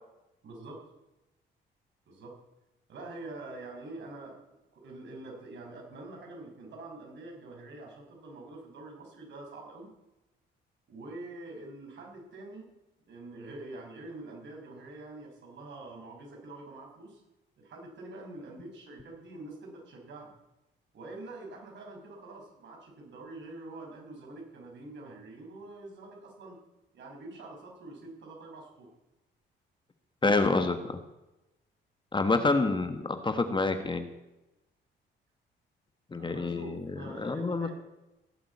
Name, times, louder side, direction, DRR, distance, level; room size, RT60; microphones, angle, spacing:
voice 1, 0.4-0.8 2.1-2.4 2.9-4.4 4.7-9.9 10.9-12.7 13.1-17.2 17.6-20.3 20.9-26.6 26.9-28.9 36.1-37.7, right 2 dB, 65° right, 0 dB, 5.7 m, -45 dB
voice 2, 30.2-31.0 32.1-34.1 36.1-37.7, left 3 dB, 25° left, 9 dB, 1.4 m, -28 dB
17.0 x 7.6 x 8.6 m, 0.98 s
cardioid pair, 90°, 20 cm